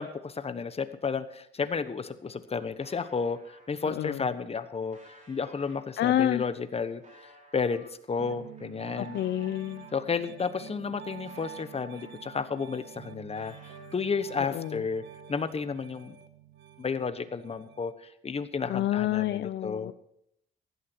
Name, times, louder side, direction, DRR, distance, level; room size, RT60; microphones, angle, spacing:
voice 1, 0.0-7.0 7.5-9.2 9.9-13.5 13.9-15.0 15.3-16.2 16.8-19.9, left 5 dB, 30° left, 12 dB, 1.1 m, -32 dB
sound 1, 2.1-3.7 4.3-10.1 10.6-12.5 12.8-14.6, equal, 35° right, 5.1 m, -58 dB
voice 2, 3.9-4.2 6.0-6.4 9.0-9.9 14.4-14.8 18.7-19.9, left 12 dB, 60° left, 13 dB, 0.5 m, -28 dB
Piano, 8.2-17.9, right 6 dB, 65° right, 1.3 m, -47 dB
15.0 x 11.0 x 4.5 m, 0.74 s
cardioid pair, 90°, 20 cm